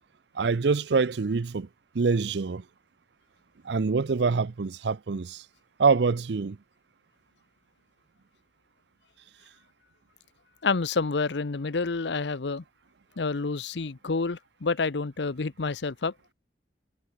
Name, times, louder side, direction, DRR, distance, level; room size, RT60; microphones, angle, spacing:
voice 1, 0.4-1.7 1.9-2.6 3.6-5.4 5.8-6.6, right 4 dB, 75° right, 0.5 m, -25 dB
voice 2, 10.6-12.6 13.2-16.1, left 4 dB, 80° left, 0.8 m, -28 dB
head